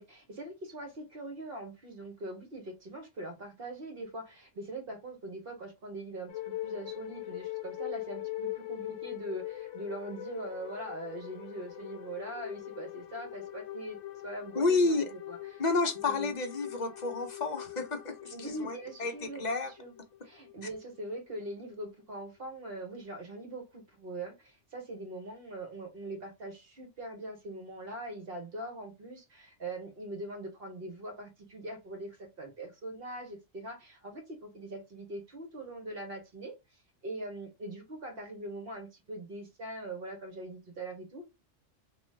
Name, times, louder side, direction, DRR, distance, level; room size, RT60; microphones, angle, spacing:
voice 1, 0.0-14.0 14.2-15.6 16.0-16.3 18.3-19.5 19.8-19.9 20.2-41.2, right 1 dB, 55° right, 1.1 m, -42 dB
sound 1, 6.3-21.9, left 15 dB, 80° left, 0.9 m, -42 dB
voice 2, 14.6-15.0 15.6-19.7, left 3 dB, 45° left, 0.6 m, -30 dB
3.0 x 2.3 x 3.1 m
omnidirectional pair, 1.3 m